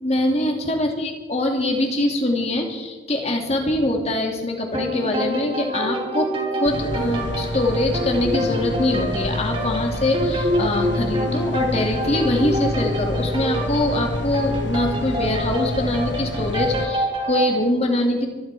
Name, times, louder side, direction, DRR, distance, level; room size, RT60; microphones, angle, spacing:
voice 1, 0.0-18.3, left 1 dB, 35° left, 2 dB, 2.6 m, -23 dB
sound 1, 4.7-17.6, equal, 30° right, 3.4 m, -27 dB
sound 2, 6.7-16.9, left 1 dB, 70° left, 1.0 m, -28 dB
24.5 x 11.5 x 4.9 m, 1.3 s
head